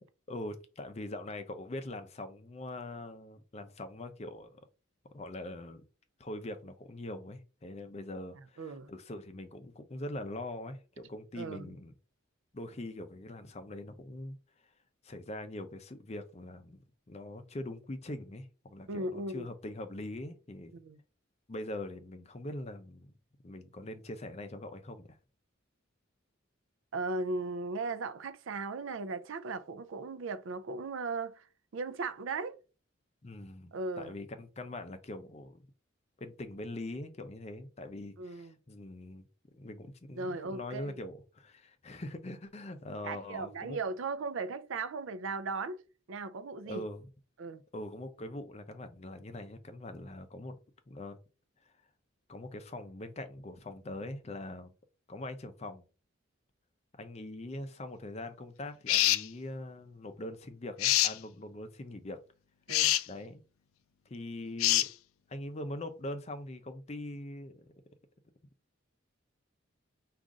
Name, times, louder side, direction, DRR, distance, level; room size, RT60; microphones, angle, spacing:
voice 1, 0.3-4.6 5.1-5.8 6.2-11.9 12.5-14.4 15.0-16.8 17.1-20.8 21.5-23.1 23.4-25.2 33.2-35.6 36.2-43.8 46.6-47.1 47.7-50.6 50.9-51.2 52.3-54.7 55.1-55.8 56.9-62.2 63.1-63.4 64.1-64.8 65.3-67.7, left 1 dB, 30° left, 0.5 m, -42 dB
voice 2, 8.6-8.9 11.4-11.8 18.9-19.5 20.7-21.0 26.9-31.5 31.7-32.6 33.7-34.1 38.2-38.5 40.2-40.9 43.0-45.8 46.1-46.9 47.4-47.6 62.7-63.0, right 3 dB, 70° right, 0.5 m, -37 dB
sound 1, 58.9-59.3 60.8-61.2 62.7-63.0 64.6-64.9, left 14 dB, 85° left, 0.3 m, -25 dB
5.0 x 2.5 x 3.6 m
head